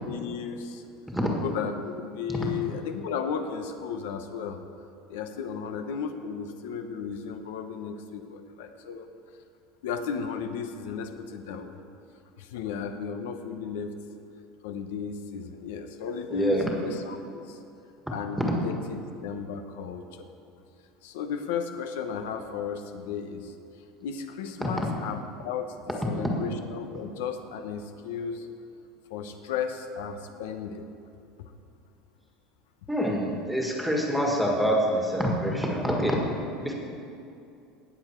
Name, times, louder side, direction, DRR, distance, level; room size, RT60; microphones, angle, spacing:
voice 1, 0.1-0.8 1.4-4.6 5.1-9.1 9.8-11.8 12.4-13.9 14.6-17.6 18.1-20.3 21.0-23.5 24.0-28.5 29.1-30.9, left 6 dB, 90° left, 7 dB, 0.9 m, -34 dB
voice 2, 16.3-16.6 24.6-24.7 32.9-36.2 36.6-36.7, equal, ahead, -1 dB, 1.6 m, -26 dB
18.5 x 7.0 x 4.5 m, 2.6 s
cardioid pair, 160°, 0 cm